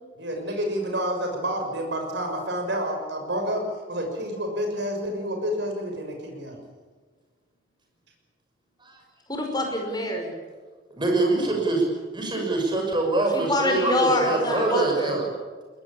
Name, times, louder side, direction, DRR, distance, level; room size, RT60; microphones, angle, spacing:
voice 1, 0.2-3.6 3.9-6.6 11.2-11.3, equal, 60° right, 3 dB, 6.3 m, -29 dB
voice 2, 9.3-10.3 13.3-15.2, left 1 dB, 20° left, 2 dB, 5.4 m, -25 dB
voice 3, 11.0-11.9 12.1-15.3, right 2 dB, 25° right, 1 dB, 6.2 m, -24 dB
22.0 x 20.5 x 8.7 m, 1.4 s
head